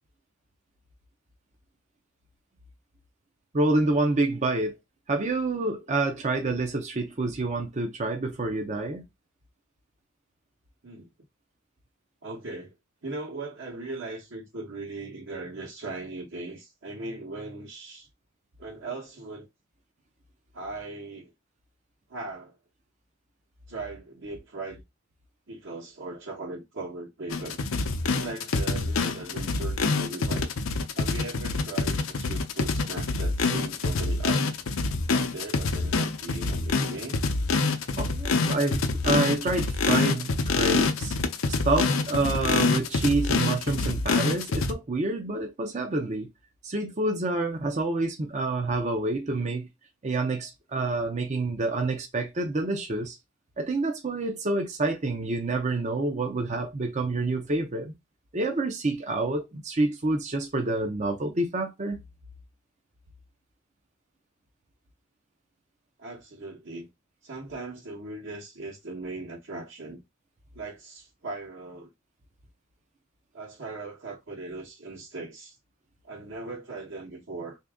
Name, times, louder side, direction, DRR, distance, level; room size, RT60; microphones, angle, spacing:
voice 1, 3.5-4.8 5.1-9.0 38.0-41.1 41.5-46.3 46.6-49.7 50.0-53.2 53.6-57.9 58.3-62.0, right 2 dB, 35° right, 0.6 m, -28 dB
voice 2, 12.2-12.7 13.0-18.1 18.6-19.5 20.5-21.3 22.1-22.6 23.7-24.8 25.5-27.6 28.0-30.5 30.9-34.4 35.1-37.2 66.0-66.9 67.2-70.0 70.5-71.9 73.3-75.6 76.0-77.6, right 3 dB, 60° right, 1.1 m, -39 dB
sound 1, 27.3-44.7, left 3 dB, 80° left, 0.6 m, -26 dB
3.5 x 2.8 x 3.5 m
head